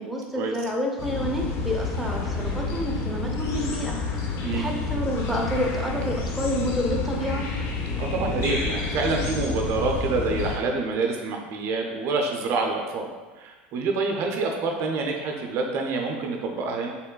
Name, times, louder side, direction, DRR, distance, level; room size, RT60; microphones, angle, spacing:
voice 1, 0.0-7.4, equal, ahead, -1 dB, 0.6 m, -29 dB
sound 1, 1.0-10.6, left 3 dB, 50° left, 0.6 m, -29 dB
voice 2, 8.0-13.1 13.4-16.9, right 3 dB, 50° right, 2 dB, 0.5 m, -27 dB
4.3 x 3.4 x 2.2 m, 1.3 s
hypercardioid pair, 80°, 6 cm